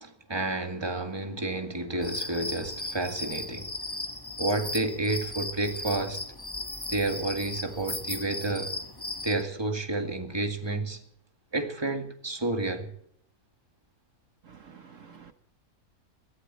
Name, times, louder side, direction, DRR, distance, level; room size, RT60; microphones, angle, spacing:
voice 1, 0.0-3.7 4.4-6.2 6.9-8.7 9.2-11.0 11.5-12.9, right 2 dB, 15° right, 2.0 m, -30 dB
sound 1, 2.0-9.4, left 2 dB, 15° left, 1.4 m, -36 dB
voice 2, 14.4-15.3, right 6 dB, 60° right, 1.5 m, -50 dB
22.0 x 14.5 x 4.2 m
omnidirectional pair, 1.5 m